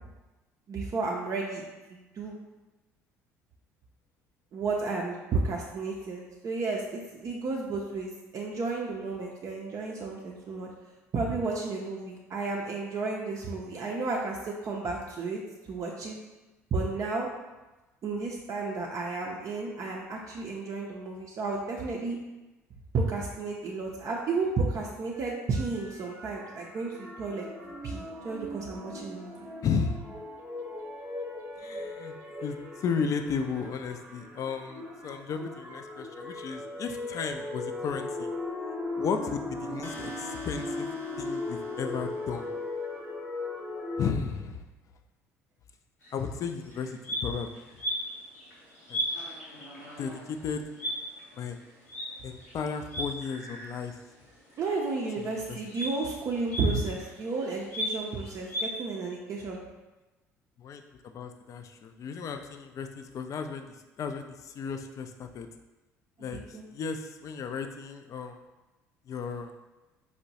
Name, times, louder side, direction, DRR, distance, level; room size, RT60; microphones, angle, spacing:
voice 1, 0.7-1.6 1.9-2.4 4.5-10.7 11.1-15.4 15.7-16.2 16.7-17.3 18.0-22.2 22.9-27.4 27.8-29.5 54.6-59.6 66.3-66.7, right 3 dB, 45° right, -2 dB, 0.5 m, -32 dB
sound 1, 25.1-44.1, left 2 dB, 20° right, 0.8 m, -38 dB
voice 2, 29.6-30.0 31.6-32.1 32.4-38.3 39.0-40.9 41.2-42.5 44.0-44.6 46.1-47.6 48.9-49.0 50.0-50.6 51.3-51.6 52.2-54.0 55.2-55.6 60.6-63.7 64.0-65.5 66.2-68.4 69.1-69.5, left 6 dB, 45° left, 7 dB, 0.3 m, -34 dB
sound 2, 39.8-42.7, left 2 dB, 25° left, 0.7 m, -48 dB
sound 3, 46.0-46.2 46.7-54.0 54.3-58.7, equal, 85° left, 0.8 m, -37 dB
4.4 x 2.1 x 2.7 m, 1.1 s
figure-of-eight pair, 55°, 8 cm